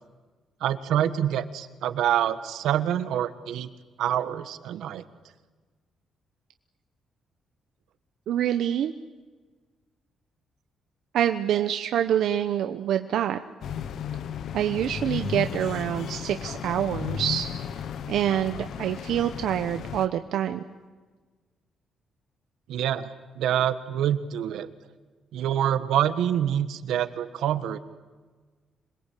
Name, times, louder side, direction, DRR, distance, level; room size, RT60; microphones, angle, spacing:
voice 1, 0.6-3.7 4.0-5.0 22.7-24.7 25.3-27.8, right 10 dB, 90° right, 10 dB, 1.5 m, -26 dB
voice 2, 8.3-8.9 11.1-13.4 14.5-17.5 18.1-20.6, right 10 dB, 70° right, 7 dB, 1.0 m, -26 dB
sound 1, 13.6-20.1, left 8 dB, 60° left, 1.1 m, -34 dB
26.5 x 21.5 x 8.5 m, 1.4 s
cardioid pair, 175°, 0 cm